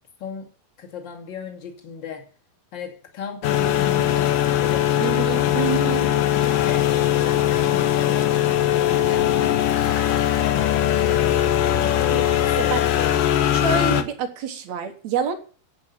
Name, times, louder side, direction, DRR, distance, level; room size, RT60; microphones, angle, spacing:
voice 1, 0.8-2.3 2.7-5.2 6.0-6.9 7.2-8.4 8.7-9.7 10.4-12.3 12.6-13.2, left 6 dB, 35° left, 2.6 m, -36 dB
sound 1, 3.0-3.3 3.6-3.7 6.2-6.3 6.6-6.7 6.9-11.2, left 4 dB, 50° left, 3.5 m, -42 dB
sound 2, 3.4-14.0, left 11 dB, 70° left, 2.5 m, -20 dB
voice 2, 5.0-6.1 12.1-12.2 12.6-12.9 13.5-15.3, right 7 dB, 60° right, 2.0 m, -27 dB
11.0 x 8.4 x 8.3 m
omnidirectional pair, 4.7 m